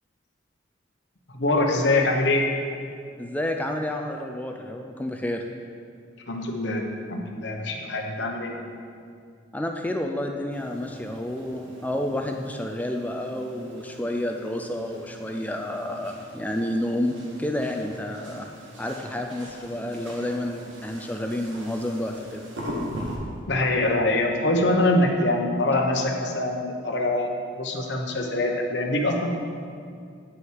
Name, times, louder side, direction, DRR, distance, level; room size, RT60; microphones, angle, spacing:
voice 1, 1.3-2.4 6.3-8.5 23.5-29.3, left 2 dB, 65° left, 2 dB, 1.0 m, -24 dB
voice 2, 3.2-5.4 9.5-18.5 18.8-22.4, left 1 dB, 10° left, 3 dB, 0.4 m, -30 dB
sound 1, 10.5-23.2, equal, 75° right, 1.7 m, -41 dB
9.0 x 6.3 x 4.7 m, 2.3 s
head